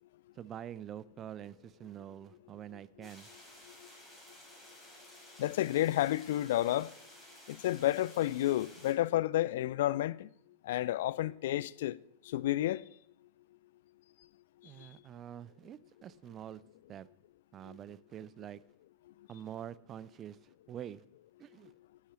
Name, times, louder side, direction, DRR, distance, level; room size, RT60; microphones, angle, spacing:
voice 1, 0.3-3.3 14.6-16.6 16.9-17.1 17.5-18.6 19.3-21.0 21.4-21.7, right 10 dB, 30° right, 0.5 m, -46 dB
sound 1, 3.0-8.9, left 1 dB, 5° left, 6.2 m, -55 dB
voice 2, 5.4-6.9 7.5-10.3 10.6-12.0 12.3-12.9 17.7-17.8, left 14 dB, 55° left, 0.4 m, -31 dB
11.5 x 8.5 x 9.2 m
figure-of-eight pair, 90°, 0 cm